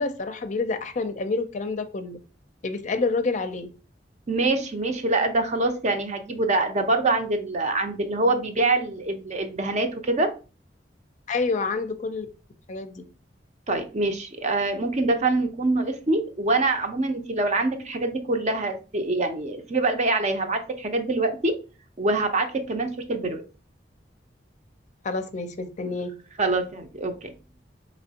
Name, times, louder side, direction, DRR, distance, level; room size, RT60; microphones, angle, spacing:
voice 1, 0.0-2.2 2.6-3.7 11.3-12.3 12.7-13.0 25.0-26.1, left 3 dB, 45° left, 9 dB, 0.5 m, -28 dB
voice 2, 4.3-10.3 13.7-21.5 22.0-23.4 26.4-27.3, right 2 dB, 40° right, 6 dB, 0.6 m, -25 dB
5.2 x 3.1 x 2.8 m, 0.34 s
head